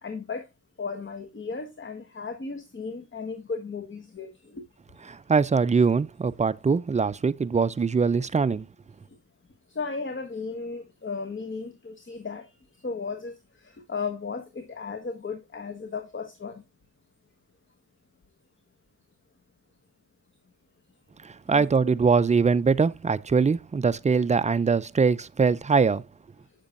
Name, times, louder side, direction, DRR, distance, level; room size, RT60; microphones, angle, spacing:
voice 1, 0.0-0.5 0.8-4.6 8.5-8.6 9.7-12.5 12.8-16.6 21.5-21.9, left 4 dB, 30° left, 1.2 m, -35 dB
voice 2, 5.1-8.7 21.2-26.0, right 5 dB, 20° right, 0.3 m, -22 dB
8.1 x 6.8 x 2.5 m
cardioid pair, 75°, 40 cm